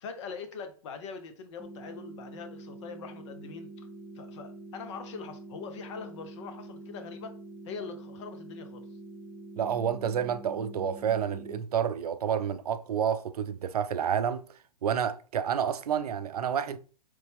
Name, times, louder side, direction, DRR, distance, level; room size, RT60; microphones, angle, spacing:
voice 1, 0.0-3.9 4.1-7.3 7.7-8.8, left 5 dB, 50° left, 0.9 m, -42 dB
sound 1, 1.6-11.6, right 2 dB, 10° left, 0.6 m, -46 dB
voice 2, 9.6-14.4 14.8-16.8, right 8 dB, 75° right, 0.5 m, -29 dB
4.1 x 3.3 x 3.4 m
hypercardioid pair, 125°, 20 cm